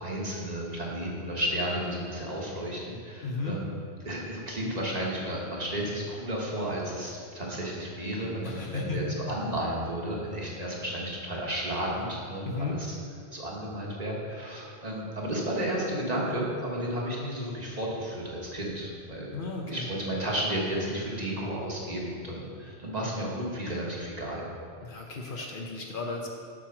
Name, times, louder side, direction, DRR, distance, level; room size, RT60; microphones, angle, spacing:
voice 1, 0.0-3.7 4.0-13.0 13.3-19.3 19.7-24.5, right 1 dB, 35° right, -4 dB, 1.4 m, -33 dB
voice 2, 3.2-3.6 8.4-9.3 10.3-10.4 12.4-12.8 19.3-19.9 24.8-26.3, left 3 dB, 55° left, 0 dB, 0.9 m, -34 dB
7.6 x 4.8 x 6.1 m, 2.3 s
omnidirectional pair, 1.1 m